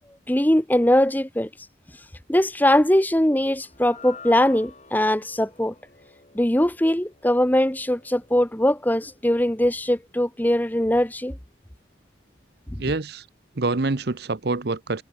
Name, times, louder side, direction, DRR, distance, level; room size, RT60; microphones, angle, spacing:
voice 1, 0.3-1.5 2.3-5.7 6.3-11.4 12.7-12.8, left 1 dB, 10° left, 1.0 m, -21 dB
sound 1, 3.6-10.0, left 5 dB, 35° left, 5.9 m, -49 dB
voice 2, 12.8-13.2 13.6-15.0, right 3 dB, 55° right, 0.8 m, -26 dB
head